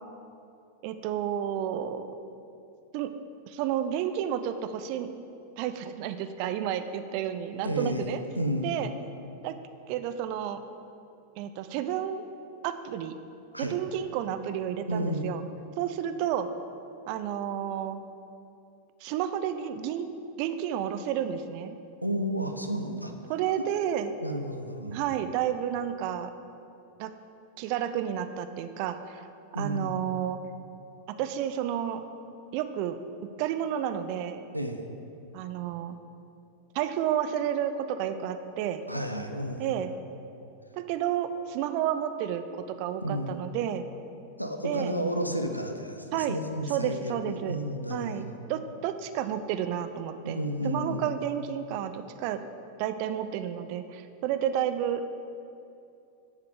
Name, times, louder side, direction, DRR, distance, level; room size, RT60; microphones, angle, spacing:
voice 1, 0.8-2.1 2.9-3.1 3.5-5.1 5.6-8.2 8.6-8.9 9.4-9.5 9.9-10.6 11.4-12.2 12.6-13.1 13.6-15.4 15.8-16.5 17.1-18.0 19.0-20.1 20.4-21.8 23.3-24.1 24.9-26.3 27.0-27.1 27.6-29.2 29.6-30.4 31.1-32.0 32.5-33.0 33.4-34.4 35.3-36.0 36.7-38.8 39.6-39.9 40.7-43.9 44.6-45.0 46.1-46.4 46.7-47.6 47.9-50.4 50.6-52.4 52.8-55.0, right 10 dB, 45° right, 9 dB, 0.3 m, -31 dB
voice 2, 7.6-8.7 13.5-13.8 14.9-15.3 22.0-23.1 24.2-25.0 29.5-30.0 34.5-34.8 38.9-39.7 43.0-43.4 44.4-48.3 50.2-51.0, equal, 90° left, 5 dB, 0.4 m, -32 dB
9.7 x 3.8 x 3.5 m, 2.6 s
figure-of-eight pair, 90°, 0 cm